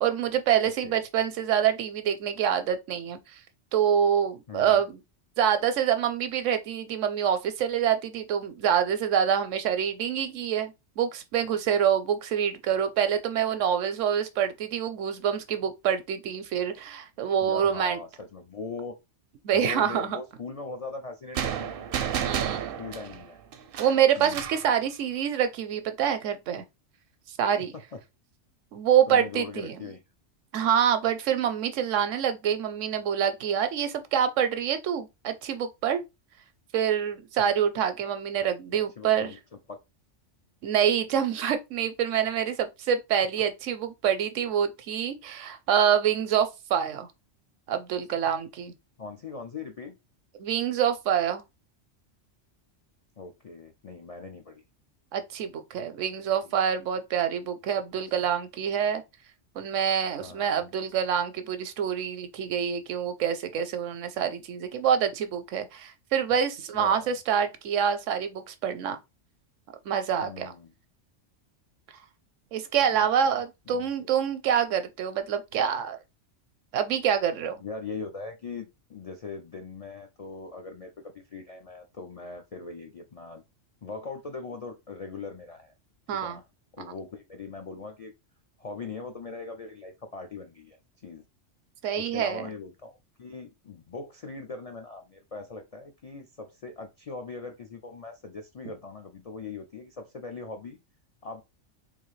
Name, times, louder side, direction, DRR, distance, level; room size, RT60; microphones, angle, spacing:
voice 1, 0.0-3.2 3.7-5.0 5.4-18.0 19.4-20.2 22.0-22.7 23.8-26.6 27.3-27.7 28.7-29.8 30.5-36.0 36.7-39.3 40.6-47.1 47.7-48.7 50.4-51.4 55.1-59.0 59.6-69.0 69.9-70.5 72.5-76.0 76.7-77.6 86.1-86.4 91.8-92.5, right 8 dB, 85° right, 1.0 m, -26 dB
voice 2, 4.5-4.8 17.4-18.9 19.5-22.0 22.8-23.4 24.2-24.5 27.6-27.7 27.9-28.0 29.1-30.0 38.7-39.4 39.7-39.8 49.0-49.9 53.2-54.6 56.4-56.5 60.2-60.6 66.7-67.2 70.2-70.7 72.8-73.4 73.7-74.1 77.6-83.4 83.8-85.7 86.1-86.5 86.7-88.1 88.6-91.2 91.9-100.8 101.2-101.4, left 4 dB, 60° left, 0.3 m, -40 dB
sound 1, 21.4-24.7, right 9 dB, 60° right, 0.6 m, -32 dB
3.6 x 2.6 x 3.1 m
omnidirectional pair, 1.3 m